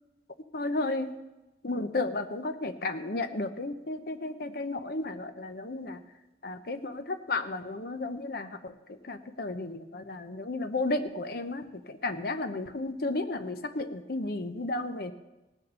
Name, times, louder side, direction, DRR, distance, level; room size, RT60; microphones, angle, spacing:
voice 1, 0.5-1.2 1.6-6.0 6.4-15.1, left 2 dB, 60° left, 8 dB, 0.8 m, -33 dB
18.0 x 6.8 x 5.6 m, 1.0 s
head